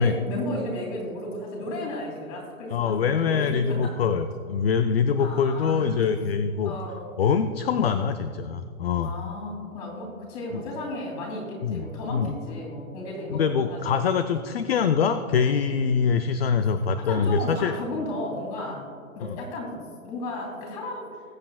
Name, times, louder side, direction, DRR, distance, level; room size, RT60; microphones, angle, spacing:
voice 1, 0.0-4.0 5.2-6.1 6.6-7.2 9.0-14.2 17.0-18.9 19.1-21.2, left 1 dB, 30° left, -1 dB, 2.8 m, -34 dB
voice 2, 2.7-6.8 7.2-9.1 11.6-12.4 13.3-17.8 19.2-19.4, left 6 dB, 45° left, 10 dB, 0.4 m, -24 dB
21.0 x 7.4 x 2.3 m, 2.2 s
hypercardioid pair, 155°, 42 cm